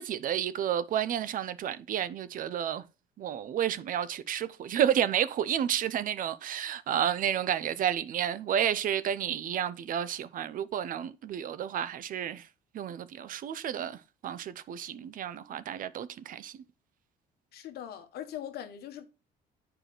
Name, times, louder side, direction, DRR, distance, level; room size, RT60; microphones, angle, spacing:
voice 1, 0.0-2.8 3.2-12.5 12.7-14.0 14.2-16.6, right 10 dB, 55° right, 0.6 m, -31 dB
voice 2, 17.5-19.1, left 10 dB, 70° left, 1.2 m, -41 dB
8.8 x 4.8 x 3.1 m
cardioid pair, 110°, 17 cm